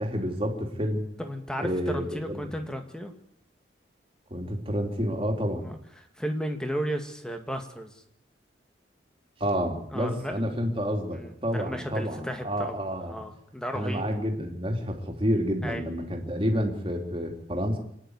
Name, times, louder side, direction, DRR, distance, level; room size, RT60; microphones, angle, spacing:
voice 1, 0.0-1.0 1.6-2.5 4.3-5.7 9.4-13.2 13.7-17.8, equal, 30° right, 2 dB, 3.3 m, -29 dB
voice 2, 1.2-3.1 5.6-8.0 9.9-10.7 11.1-12.7 13.0-14.0 15.6-15.8, equal, 5° left, 5 dB, 2.1 m, -34 dB
26.5 x 10.5 x 9.7 m, 0.74 s
head